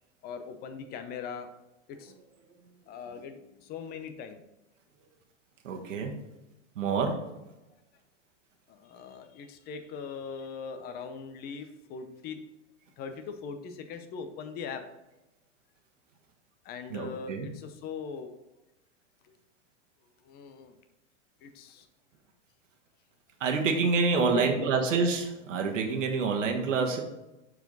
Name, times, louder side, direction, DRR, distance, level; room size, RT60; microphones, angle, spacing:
voice 1, 0.2-1.5 1.9-2.1 2.9-4.4 8.7-12.4 13.0-14.8 16.6-18.3 20.2-20.7 21.4-21.9 24.1-24.7, left 5 dB, 25° left, 8 dB, 0.6 m, -40 dB
voice 2, 5.6-6.2 6.7-7.2 16.9-17.5 23.4-27.0, right 4 dB, 85° right, 3 dB, 1.3 m, -27 dB
6.8 x 4.7 x 4.0 m, 0.99 s
hypercardioid pair, 135°, 37 cm